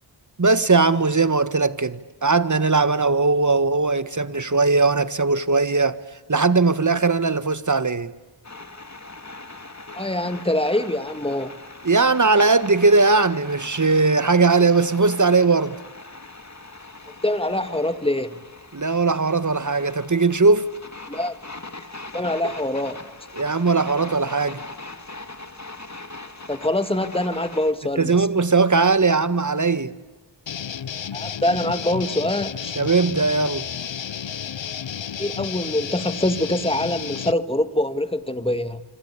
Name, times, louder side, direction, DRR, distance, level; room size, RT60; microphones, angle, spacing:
voice 1, 0.4-6.0 6.3-8.1 11.8-15.8 18.7-20.7 22.4-22.5 23.3-24.6 28.0-29.9 32.8-33.7, right 3 dB, 40° right, 1.6 m, -19 dB
sound 1, 8.4-27.7, left 2 dB, 35° left, 2.5 m, -40 dB
voice 2, 9.9-11.5 17.2-18.4 21.1-21.4 22.1-23.1 26.5-28.3 31.1-32.8 35.2-38.8, left 1 dB, 10° left, 2.1 m, -24 dB
sound 2, 30.5-37.3, left 8 dB, 70° left, 0.8 m, -32 dB
26.0 x 25.5 x 8.5 m
wide cardioid pair, 45°, 47 cm